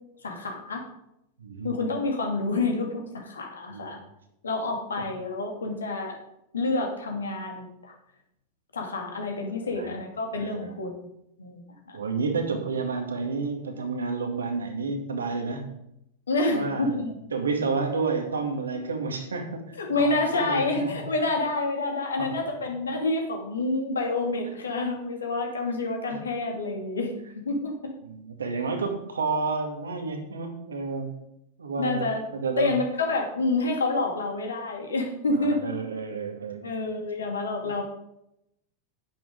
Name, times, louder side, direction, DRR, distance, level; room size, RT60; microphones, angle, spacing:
voice 1, 0.2-0.8 1.6-4.0 4.4-6.2 6.5-7.9 8.7-11.1 11.4-12.0 16.3-17.2 19.8-27.9 31.8-32.2 32.6-35.8 36.6-37.8, left 3 dB, 70° left, 2 dB, 2.4 m, -28 dB
voice 2, 1.4-1.7 3.7-4.0 5.0-5.1 9.7-10.0 10.3-10.8 11.9-15.7 16.5-17.0 17.3-20.9 22.2-22.3 28.0-31.1 31.6-32.7 35.3-36.6 37.6-37.8, right 4 dB, 70° right, 4 dB, 2.0 m, -30 dB
10.5 x 9.6 x 3.9 m, 0.79 s
figure-of-eight pair, 90°, 0 cm